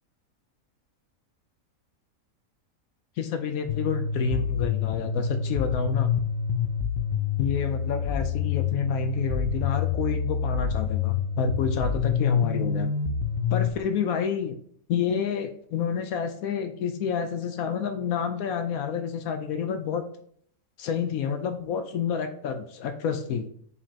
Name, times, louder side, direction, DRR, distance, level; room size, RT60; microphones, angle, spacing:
voice 1, 3.2-6.1 7.4-12.9 13.5-14.6 14.9-20.0 20.8-23.5, left 6 dB, 80° left, 7 dB, 1.1 m, -29 dB
sound 1, 3.7-13.7, left 7 dB, 60° left, 0.8 m, -27 dB
8.2 x 5.0 x 2.8 m, 0.63 s
omnidirectional pair, 1.5 m